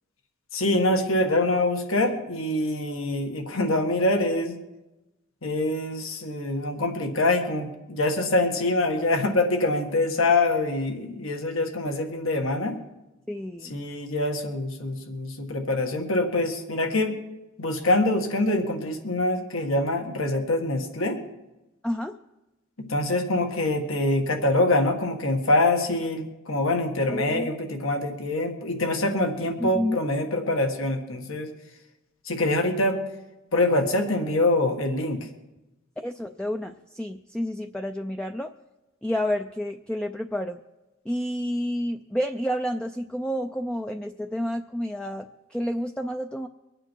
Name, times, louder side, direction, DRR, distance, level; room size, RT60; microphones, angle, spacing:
voice 1, 0.5-4.6 5.4-12.8 13.7-17.2 17.6-21.2 22.8-31.5 32.3-33.0 33.5-35.3, left 2 dB, 80° left, 4 dB, 1.7 m, -25 dB
voice 2, 13.3-13.8 21.8-22.2 27.1-27.5 29.6-30.0 36.0-38.5 39.0-40.6 41.1-46.5, equal, 5° left, 5 dB, 0.4 m, -30 dB
23.5 x 8.9 x 4.6 m, 1.0 s
head